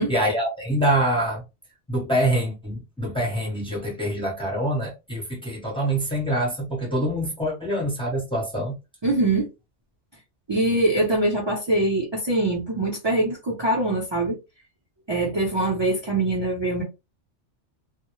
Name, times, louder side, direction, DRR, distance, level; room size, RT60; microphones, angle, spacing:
voice 1, 0.1-1.4 1.9-8.8, right 1 dB, 5° left, 0.8 m, -25 dB
voice 2, 9.0-9.5 10.5-14.4 15.1-16.8, right 2 dB, 30° right, 0.5 m, -23 dB
2.1 x 2.0 x 3.0 m
omnidirectional pair, 1.2 m